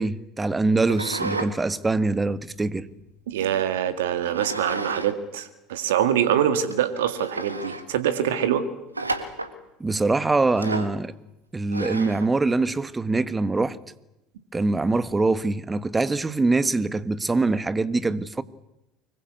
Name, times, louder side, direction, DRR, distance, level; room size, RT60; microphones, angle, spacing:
voice 1, 0.0-2.9 9.8-11.1 11.5-13.8 14.5-18.4, right 3 dB, 15° right, 1.5 m, -23 dB
sound 1, 0.8-1.5 1.9-3.3 4.3-5.1 5.4-5.5 6.2-6.3 6.7-6.8 7.2-7.9 8.9-9.6 10.5-11.0 11.7-12.3, right 2 dB, 90° right, 1.8 m, -32 dB
voice 2, 3.3-8.6, right 9 dB, 70° right, 1.9 m, -24 dB
25.0 x 22.5 x 8.4 m
figure-of-eight pair, 65°, 0 cm